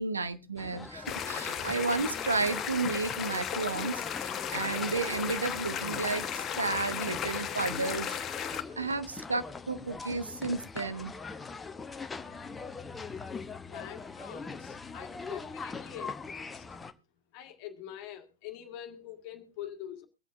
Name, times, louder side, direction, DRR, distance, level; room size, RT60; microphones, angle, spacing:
voice 1, 0.0-8.2 8.8-11.1, right 3 dB, 75° right, 1.0 m, -32 dB
sound 1, 0.6-16.9, left 4 dB, 15° left, 0.9 m, -42 dB
sound 2, 1.1-8.6, left 8 dB, 30° left, 1.2 m, -35 dB
sound 3, 1.5-1.7 2.5-2.7 3.5-3.7 4.4-4.5 5.3-5.4 6.0-6.2 6.8-6.9 7.7-7.8 8.5-8.7, right 4 dB, 10° right, 2.3 m, -51 dB
voice 2, 13.6-16.6 17.3-20.1, left 11 dB, 45° left, 1.7 m, -45 dB
24.0 x 8.4 x 2.6 m
figure-of-eight pair, 90°, 0 cm